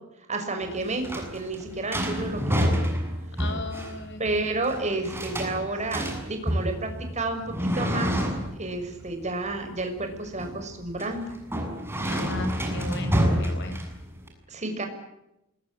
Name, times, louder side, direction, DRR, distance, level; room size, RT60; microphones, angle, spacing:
voice 1, 0.3-2.8 4.2-8.1 8.5-11.3 14.5-14.9, right 2 dB, 35° right, 5 dB, 6.2 m, -31 dB
sound 1, 0.6-14.3, equal, 10° right, 7.5 m, -29 dB
voice 2, 3.4-4.2 12.1-13.9, left 2 dB, 60° left, 8 dB, 6.2 m, -36 dB
27.5 x 21.5 x 8.6 m, 0.88 s
head